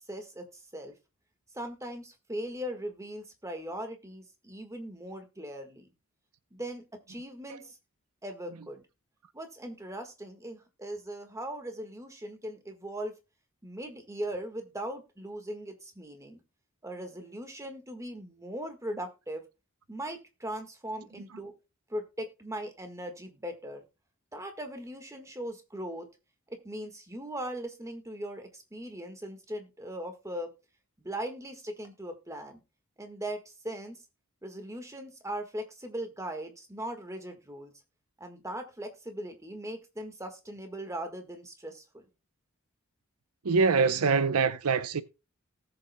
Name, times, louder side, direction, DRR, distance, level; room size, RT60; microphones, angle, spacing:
voice 1, 0.1-0.9 1.5-5.9 6.5-7.8 8.2-8.8 9.3-13.1 13.6-16.4 16.8-19.4 19.9-21.5 21.9-23.8 24.3-26.1 26.5-30.5 31.0-32.6 33.0-34.0 34.4-37.7 38.2-42.1, right 1 dB, 15° right, 1.5 m, -39 dB
voice 2, 43.4-45.0, right 5 dB, 80° right, 0.7 m, -24 dB
18.5 x 6.9 x 2.2 m
head